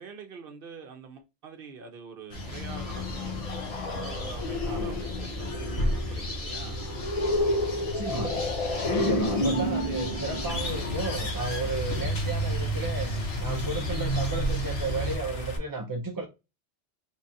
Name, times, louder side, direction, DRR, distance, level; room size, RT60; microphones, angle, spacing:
voice 1, 0.0-3.4 3.8-6.8, right 5 dB, 55° right, 0.9 m, -45 dB
sound 1, 2.3-15.2, right 1 dB, 60° left, 1.4 m, -33 dB
sound 2, 2.3-12.1, left 2 dB, 40° left, 0.6 m, -31 dB
voice 2, 4.6-5.0 7.8-8.5 8.8-13.1 13.4-16.3, right 2 dB, 30° right, 0.4 m, -34 dB
sound 3, 10.5-15.6, left 1 dB, 75° left, 1.4 m, -36 dB
3.8 x 2.4 x 4.1 m
omnidirectional pair, 1.2 m